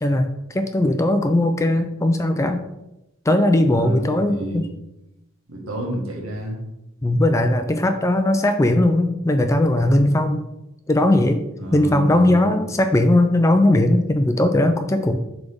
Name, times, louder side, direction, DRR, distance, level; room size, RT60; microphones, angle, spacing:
voice 1, 0.0-2.6 3.3-4.7 7.0-10.4 10.9-11.4 11.7-15.2, left 1 dB, 15° left, 7 dB, 0.3 m, -18 dB
voice 2, 3.7-4.7 5.5-6.6 11.6-12.7, equal, 75° right, -1 dB, 1.6 m, -30 dB
7.8 x 3.5 x 3.5 m, 0.91 s
head